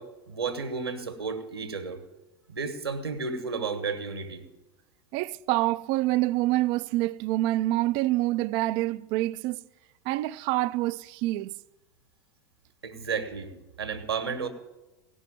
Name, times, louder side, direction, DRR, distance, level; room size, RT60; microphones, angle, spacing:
voice 1, 0.0-2.0 2.5-4.4 12.8-14.5, right 5 dB, 80° right, 1.6 m, -33 dB
voice 2, 5.1-9.6 10.1-11.5, right 17 dB, 45° right, 0.4 m, -26 dB
17.5 x 6.3 x 9.0 m
figure-of-eight pair, 85°, 13 cm